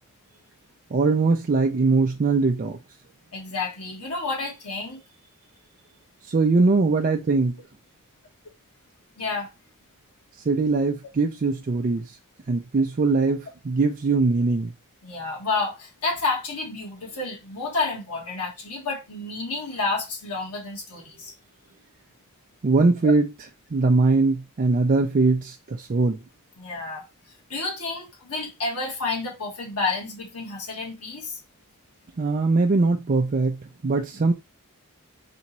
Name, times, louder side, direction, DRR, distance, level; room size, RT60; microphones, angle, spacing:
voice 1, 0.9-2.8 6.2-7.6 10.5-12.2 12.5-14.7 22.6-23.3 23.7-26.2 32.2-34.3, right 3 dB, 40° right, 0.4 m, -21 dB
voice 2, 3.3-5.0 9.2-9.5 15.0-21.3 26.6-27.0 27.5-31.4, left 3 dB, 90° left, 1.5 m, -30 dB
3.4 x 3.0 x 4.1 m
head